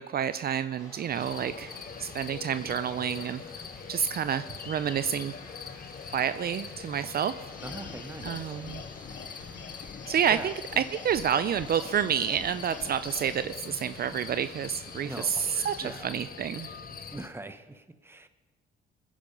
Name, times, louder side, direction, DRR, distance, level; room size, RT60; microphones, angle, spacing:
voice 1, 0.0-3.4 3.9-5.3 6.1-7.3 8.2-8.8 10.1-16.7, right 8 dB, 50° right, 13 dB, 0.5 m, -29 dB
sound 1, 0.8-16.0, equal, 15° left, 5.5 m, -52 dB
sound 2, 1.1-17.3, left 6 dB, 45° left, 1.2 m, -43 dB
sound 3, 7.5-13.4, left 6 dB, 70° left, 2.1 m, -46 dB
voice 2, 7.6-8.6 10.0-10.5 15.0-16.1 17.1-18.3, right 2 dB, 10° right, 10 dB, 1.1 m, -42 dB
21.0 x 10.0 x 5.3 m, 1.3 s
cardioid pair, 90°, 20 cm